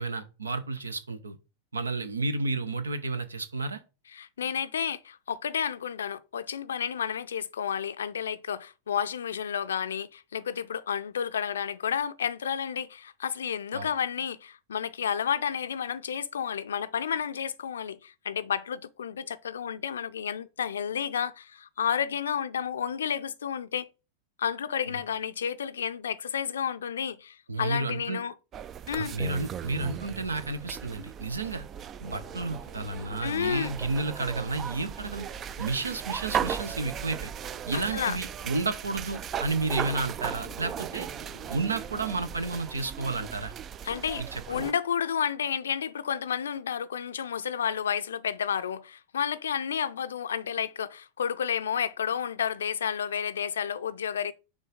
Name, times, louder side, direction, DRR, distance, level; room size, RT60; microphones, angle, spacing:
voice 1, 0.0-1.4 1.7-3.8 13.7-13.9 24.9-25.0 27.5-28.2 29.0-31.7 32.0-35.3 35.6-37.3 37.7-41.1 41.5-43.5 44.2-44.7, right 3 dB, 75° right, 0.8 m, -31 dB
voice 2, 4.1-23.9 24.4-28.3 28.9-29.1 33.2-33.7 37.7-38.2 43.8-54.3, left 8 dB, 65° left, 0.5 m, -31 dB
sound 1, 28.5-44.7, right 8 dB, 30° right, 0.3 m, -37 dB
sound 2, 32.0-42.6, right 2 dB, 50° right, 2.0 m, -52 dB
6.4 x 3.7 x 4.9 m
figure-of-eight pair, 90°, 0 cm